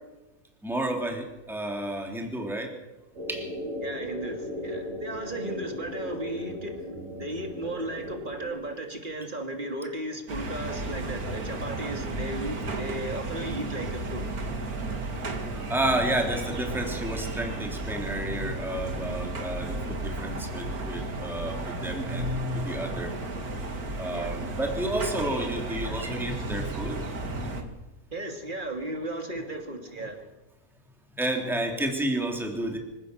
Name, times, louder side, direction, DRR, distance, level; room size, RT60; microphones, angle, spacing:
voice 1, 0.6-2.7 3.3-3.5 15.5-23.1 24.0-27.0 31.2-32.8, right 1 dB, ahead, 2 dB, 2.9 m, -31 dB
sound 1, 3.1-8.5, equal, 60° right, 5.4 m, -37 dB
voice 2, 3.8-6.8 7.2-14.2 24.1-24.4 28.1-30.2, right 1 dB, 35° right, 4 dB, 2.9 m, -35 dB
sound 2, 10.3-27.6, right 2 dB, 90° right, 2.6 m, -33 dB
25.0 x 16.5 x 6.8 m, 1.1 s
omnidirectional pair, 1.5 m